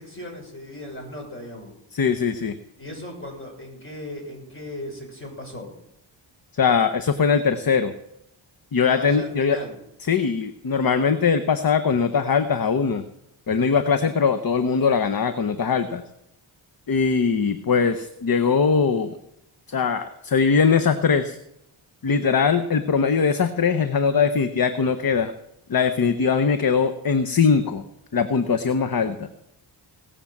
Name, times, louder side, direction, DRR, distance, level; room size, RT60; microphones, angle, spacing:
voice 1, 0.0-1.7 2.8-5.7 8.9-9.7, left 1 dB, 25° left, 1 dB, 6.3 m, -37 dB
voice 2, 1.9-2.6 6.5-7.9 8.7-9.6 10.1-13.0 13.5-16.0 16.9-19.1 19.7-21.4 22.0-25.3 25.7-27.8 28.1-29.3, left 5 dB, 45° left, 10 dB, 1.0 m, -21 dB
18.5 x 7.0 x 7.3 m, 0.82 s
cardioid pair, 80°, 50 cm